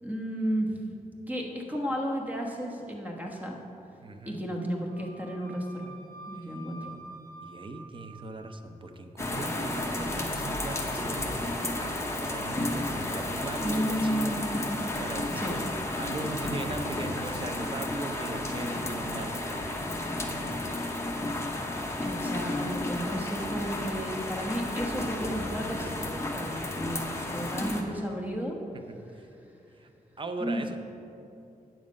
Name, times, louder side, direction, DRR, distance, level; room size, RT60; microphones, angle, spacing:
voice 1, 0.0-0.8 1.3-3.6 4.3-5.9 6.3-6.9 13.6-14.7 15.3-15.6 22.0-28.6 30.4-30.6, equal, 10° right, 0 dB, 1.2 m, -33 dB
voice 2, 4.0-4.4 6.3-6.4 7.4-14.4 15.0-15.6 16.0-19.8 20.3-20.9 29.1-29.2 29.8-29.9 30.2-30.8, right 2 dB, 35° right, 7 dB, 0.6 m, -39 dB
Wind instrument woodwind instrument, 4.9-8.5, right 2 dB, 65° right, 1.5 m, -48 dB
sound 1, 9.2-27.8, left 1 dB, 20° left, 0.9 m, -32 dB
8.8 x 7.3 x 5.2 m, 2.8 s
wide cardioid pair, 130°, 15 cm